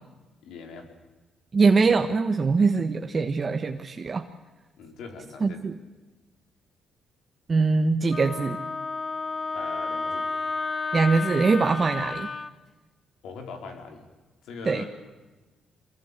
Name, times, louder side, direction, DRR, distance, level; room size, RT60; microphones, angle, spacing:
voice 1, 0.4-0.9 4.8-5.6 9.5-10.3 13.2-14.0 14.4-14.9, left 4 dB, 80° left, 4 dB, 4.4 m, -40 dB
voice 2, 1.5-4.3 5.4-5.8 7.5-8.6 10.9-12.3 14.6-14.8, right 4 dB, 35° right, 6 dB, 1.3 m, -22 dB
Wind instrument woodwind instrument, 8.1-12.5, left 4 dB, 35° left, 1.1 m, -31 dB
25.0 x 21.5 x 8.4 m, 1.2 s
cardioid pair, 90°, 0 cm